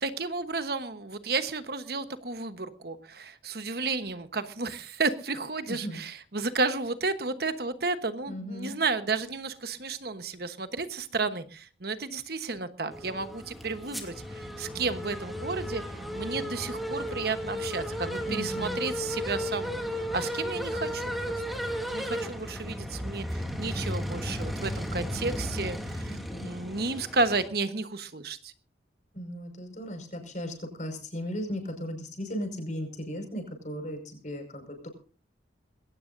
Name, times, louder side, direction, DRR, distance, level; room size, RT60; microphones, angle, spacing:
voice 1, 0.0-15.8 16.1-21.3 21.8-26.2 26.4-28.5, right 3 dB, 55° right, 10 dB, 1.2 m, -32 dB
voice 2, 5.7-6.0 8.3-8.8 18.2-18.8 26.1-26.5 29.1-34.9, equal, 40° left, 5 dB, 5.4 m, -36 dB
sound 1, 12.9-27.5, equal, ahead, 2.5 m, -34 dB
21.5 x 17.5 x 2.7 m, 0.37 s
head